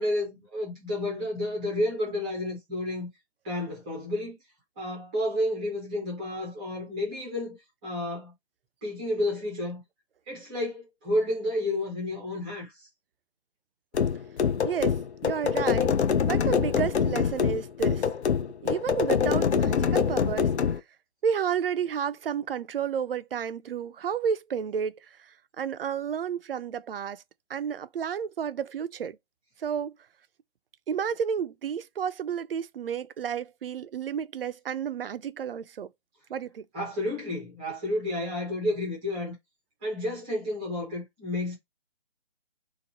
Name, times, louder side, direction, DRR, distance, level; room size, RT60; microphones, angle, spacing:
voice 1, 0.0-3.1 3.4-4.4 4.8-7.6 7.8-8.3 8.8-9.8 10.3-12.9 36.7-39.3 39.8-41.5, left 1 dB, 5° right, 0.5 m, -31 dB
sound 1, 13.9-20.8, left 7 dB, 80° left, 0.6 m, -25 dB
voice 2, 14.6-15.0 15.2-15.9 16.2-18.1 18.6-20.5 21.2-27.2 27.5-29.2 29.6-29.9 30.9-35.9 36.3-36.7, right 7 dB, 60° right, 0.5 m, -31 dB
2.9 x 2.1 x 4.1 m
figure-of-eight pair, 145°, 33 cm